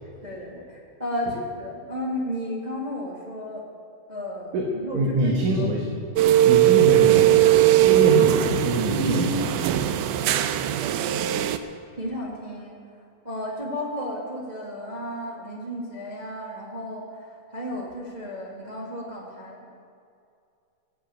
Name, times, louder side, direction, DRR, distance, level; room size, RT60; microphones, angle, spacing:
voice 1, 0.2-3.6 4.1-5.7 8.9-9.6 12.0-12.7 13.2-19.7, equal, 15° right, -4 dB, 1.5 m, -33 dB
voice 2, 4.9-5.9 6.4-9.7, right 1 dB, 65° right, 0 dB, 2.6 m, -25 dB
sound 1, 6.2-11.6, right 13 dB, 85° right, 1.8 m, -19 dB
17.5 x 8.1 x 9.0 m, 2.4 s
omnidirectional pair, 4.4 m